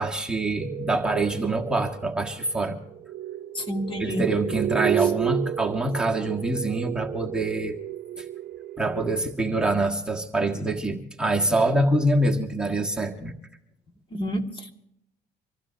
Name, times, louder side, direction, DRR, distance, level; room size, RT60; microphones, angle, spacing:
voice 1, 0.0-2.8 4.0-7.8 8.2-8.3 8.8-13.3, right 2 dB, 5° right, -1 dB, 1.5 m, -25 dB
sound 1, 0.6-9.3, right 11 dB, 55° right, 0.6 m, -32 dB
voice 2, 3.5-4.2 14.1-14.7, equal, 30° left, 4 dB, 2.0 m, -29 dB
25.5 x 15.0 x 2.7 m, 0.76 s
cardioid pair, 110°, 17 cm